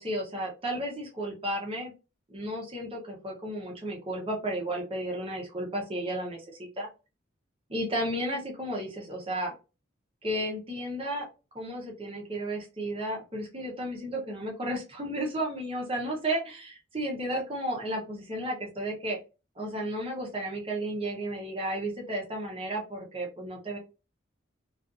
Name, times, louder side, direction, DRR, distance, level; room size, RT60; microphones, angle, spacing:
voice 1, 0.0-1.9 2.3-6.9 7.7-9.5 10.2-11.3 11.5-19.2 19.6-23.8, right 1 dB, 25° right, -2 dB, 0.7 m, -33 dB
2.5 x 2.4 x 2.4 m, 0.30 s
head